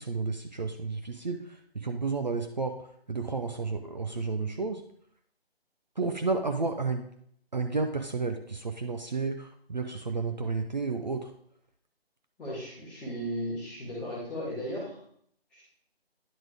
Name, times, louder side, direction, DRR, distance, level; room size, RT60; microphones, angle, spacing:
voice 1, 0.0-2.8 3.1-4.8 6.0-7.1 7.5-11.3, right 4 dB, 45° right, 5 dB, 0.6 m, -31 dB
voice 2, 12.4-15.0 15.5-15.6, equal, 5° left, -10 dB, 1.1 m, -36 dB
10.0 x 3.6 x 4.8 m, 0.67 s
figure-of-eight pair, 155°, 31 cm